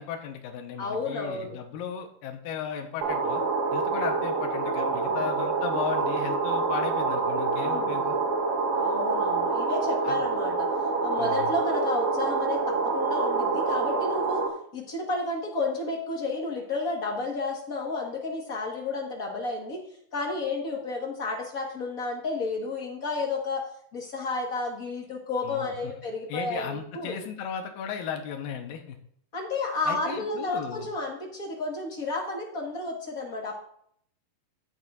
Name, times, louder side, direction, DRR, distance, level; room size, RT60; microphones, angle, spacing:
voice 1, 0.0-3.4 3.7-8.2 10.0-10.2 11.2-11.5 25.4-25.7 26.3-29.0 29.8-30.9, left 7 dB, 90° left, 4 dB, 2.8 m, -35 dB
voice 2, 0.8-1.6 5.0-5.3 7.6-8.0 8.7-10.7 11.0-19.8 20.1-23.6 23.9-27.2 29.3-33.5, left 3 dB, 50° left, 0 dB, 1.0 m, -31 dB
sound 1, 3.0-14.5, right 4 dB, 65° right, 3.1 m, -27 dB
15.0 x 9.9 x 2.5 m, 0.66 s
omnidirectional pair, 4.1 m